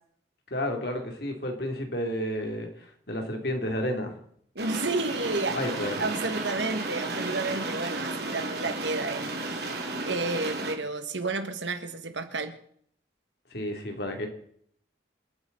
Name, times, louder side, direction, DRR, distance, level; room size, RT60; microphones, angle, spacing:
voice 1, 0.5-2.7 3.1-4.1 5.5-6.0 13.5-14.3, left 1 dB, 60° left, 2.9 m, -31 dB
sound 1, 4.6-10.7, right 2 dB, 60° right, 2.7 m, -33 dB
voice 2, 4.6-5.6 6.0-9.7 10.0-12.5, right 3 dB, 90° right, 1.9 m, -31 dB
27.5 x 9.6 x 4.0 m
head